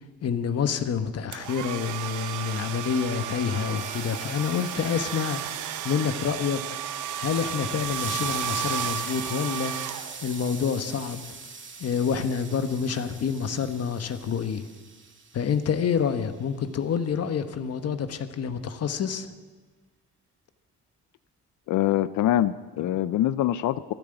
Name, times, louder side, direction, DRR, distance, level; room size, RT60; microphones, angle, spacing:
voice 1, 0.2-6.6 7.2-9.7 10.2-11.2 11.8-14.7 15.3-19.3, left 7 dB, 55° left, 9 dB, 1.1 m, -28 dB
sound 1, 1.3-10.5, right 9 dB, 80° right, 0.8 m, -33 dB
sound 2, 3.7-6.0 7.8-16.2, right 4 dB, 40° right, 1.8 m, -42 dB
voice 2, 21.7-23.9, left 12 dB, 75° left, 15 dB, 0.5 m, -24 dB
13.5 x 10.0 x 7.9 m, 1.4 s
cardioid pair, 90°, 30 cm